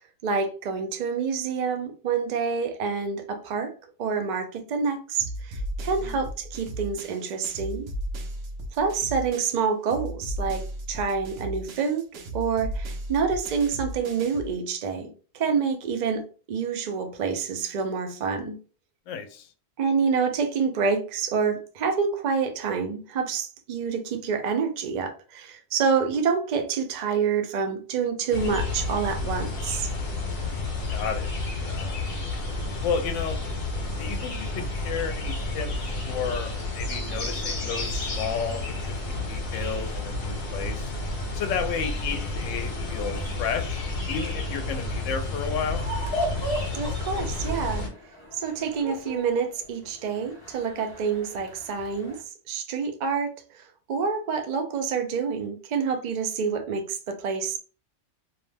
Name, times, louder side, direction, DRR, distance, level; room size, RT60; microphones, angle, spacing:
voice 1, 0.2-3.7 4.0-7.9 8.7-18.5 19.8-29.9 46.7-47.9 48.4-52.2 52.5-53.6 53.9-57.6, right 5 dB, 60° right, 0.4 m, -27 dB
sound 1, 5.2-9.6 9.9-14.5, right 1 dB, 75° right, 0.9 m, -35 dB
voice 2, 19.1-19.5 30.9-31.3 31.6-32.0 32.8-33.4 34.0-40.9 41.3-45.8, left 6 dB, 80° left, 0.9 m, -32 dB
sound 2, 28.3-47.9, left 2 dB, 55° left, 1.0 m, -31 dB
sound 3, 45.8-52.2, equal, 30° left, 0.5 m, -36 dB
2.6 x 2.1 x 3.3 m
omnidirectional pair, 1.3 m